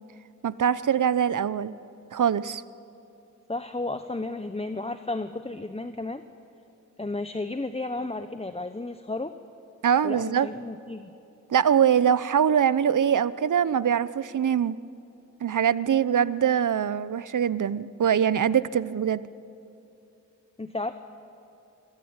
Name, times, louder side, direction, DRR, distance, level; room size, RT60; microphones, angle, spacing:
voice 1, 0.4-1.7 2.1-2.6 9.8-10.5 11.5-14.8 15.4-19.2, right 8 dB, 70° right, 17 dB, 0.8 m, -23 dB
voice 2, 3.5-6.2 7.0-9.3 10.0-11.1 20.6-20.9, left 2 dB, 20° left, 9 dB, 1.0 m, -33 dB
24.5 x 24.0 x 8.9 m, 2.7 s
cardioid pair, 55°, 32 cm